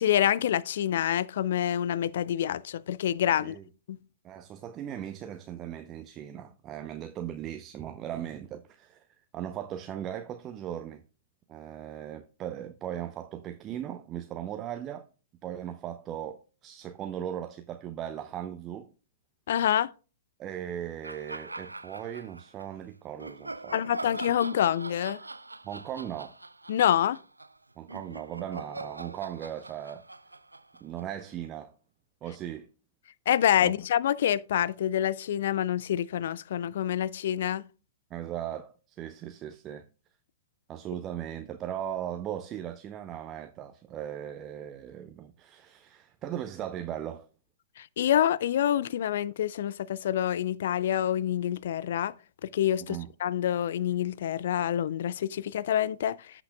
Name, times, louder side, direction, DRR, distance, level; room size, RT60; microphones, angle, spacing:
voice 1, 0.0-3.6 3.9-4.0 19.5-19.9 23.7-25.2 26.7-27.2 33.3-37.6 47.8-52.1 52.4-56.2, left 10 dB, 60° left, 0.3 m, -27 dB
voice 2, 4.2-9.0 9.3-11.0 11.5-15.1 15.4-18.9 20.4-24.2 25.6-26.3 27.8-30.0 30.8-31.7 32.2-32.7 33.6-33.7 38.1-39.8 40.7-47.3 52.8-53.1, right 10 dB, 30° right, 0.6 m, -38 dB
sound 1, 21.0-22.7 23.2-31.5, right 2 dB, 85° right, 0.4 m, -43 dB
15.0 x 6.0 x 2.2 m
figure-of-eight pair, 105°, 0 cm